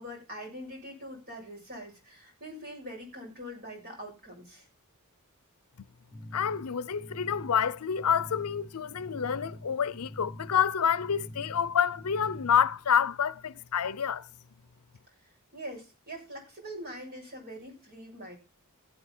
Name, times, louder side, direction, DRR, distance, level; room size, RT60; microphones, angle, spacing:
voice 1, 0.0-4.6 15.5-18.4, equal, 45° right, 7.7 m, -43 dB
sound 1, 6.1-12.8, left 1 dB, 5° left, 3.3 m, -46 dB
voice 2, 6.3-14.3, left 8 dB, 70° left, 0.6 m, -28 dB
15.5 x 9.2 x 4.3 m
head